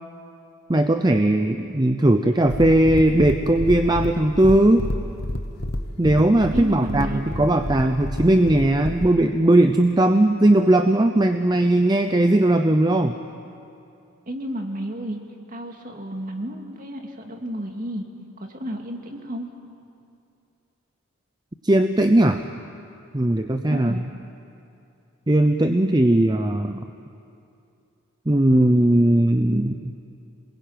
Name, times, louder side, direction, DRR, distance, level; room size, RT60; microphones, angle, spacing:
voice 1, 0.7-4.8 6.0-13.1 21.6-22.4 23.1-23.9 25.3-26.8 28.3-29.9, right 1 dB, 20° right, 7 dB, 0.7 m, -18 dB
sound 1, 2.4-9.1, left 1 dB, 50° left, 1.3 m, -30 dB
voice 2, 6.5-7.2 14.3-15.2 15.5-18.0 18.4-19.5 23.7-24.0, equal, 40° right, 3 dB, 2.4 m, -31 dB
27.0 x 21.0 x 9.2 m, 2.6 s
head